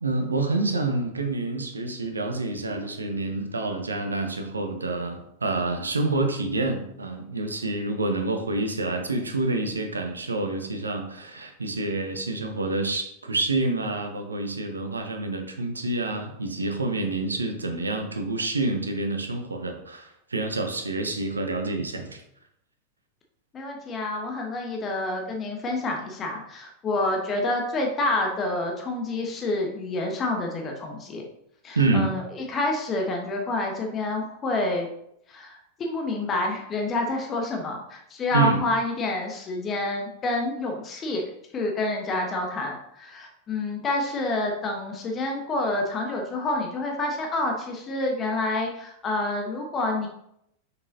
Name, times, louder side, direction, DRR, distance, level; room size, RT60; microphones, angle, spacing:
voice 1, 0.0-22.2 31.7-32.1 38.3-38.6, right 2 dB, 75° right, 5 dB, 0.8 m, -27 dB
voice 2, 23.5-31.2 31.6-34.9 35.3-50.1, left 2 dB, 25° left, 1 dB, 1.1 m, -28 dB
6.2 x 5.4 x 2.8 m, 0.75 s
figure-of-eight pair, 90°, 0 cm